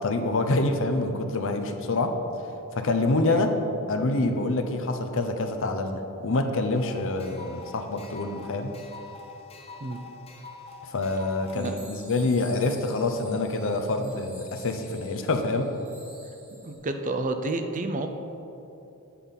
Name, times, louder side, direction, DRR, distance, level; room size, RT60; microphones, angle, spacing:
voice 1, 0.0-2.1 2.7-3.5 3.9-8.7 10.9-15.7, left 2 dB, 60° left, 6 dB, 0.7 m, -26 dB
sound 1, 6.7-11.7, left 4 dB, 25° left, 0.8 m, -45 dB
sound 2, 11.5-16.8, equal, 10° right, 1.8 m, -50 dB
voice 2, 16.6-18.1, right 2 dB, 35° right, 7 dB, 0.5 m, -30 dB
8.4 x 5.4 x 5.7 m, 3.0 s
head